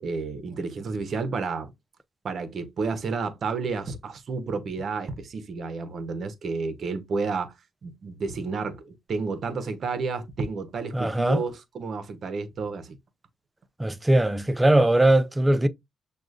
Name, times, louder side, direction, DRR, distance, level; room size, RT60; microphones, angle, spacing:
voice 1, 0.0-1.7 2.2-7.5 7.8-13.0, right 4 dB, 55° right, 0.8 m, -31 dB
voice 2, 10.9-11.4 13.8-15.7, right 1 dB, 10° right, 0.4 m, -20 dB
6.2 x 2.4 x 2.4 m
cardioid pair, 90°, 0 cm